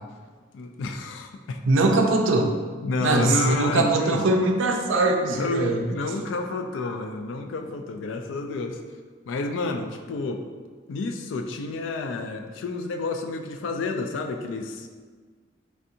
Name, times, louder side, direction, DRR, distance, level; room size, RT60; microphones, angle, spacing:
voice 1, 0.5-1.6 2.8-4.2 5.2-8.8 9.3-10.4 10.9-14.9, left 3 dB, 75° left, 6 dB, 0.3 m, -29 dB
voice 2, 1.7-2.6 3.0-5.8, right 2 dB, 85° right, 3 dB, 0.4 m, -21 dB
3.3 x 2.7 x 2.6 m, 1.5 s
head